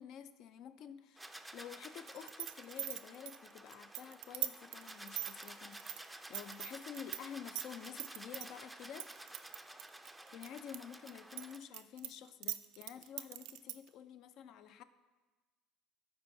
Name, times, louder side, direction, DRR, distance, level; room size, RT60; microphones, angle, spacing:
voice 1, 0.0-9.1 10.3-14.8, left 9 dB, 60° left, 12 dB, 0.4 m, -50 dB
sound 1, 1.2-11.6, right 1 dB, 5° right, 0.4 m, -52 dB
sound 2, 2.1-7.2 7.5-8.5 9.0-10.8 11.1-13.9, right 15 dB, 80° right, 0.3 m, -41 dB
12.0 x 4.5 x 2.6 m, 1.3 s
supercardioid pair, 110°, 0 cm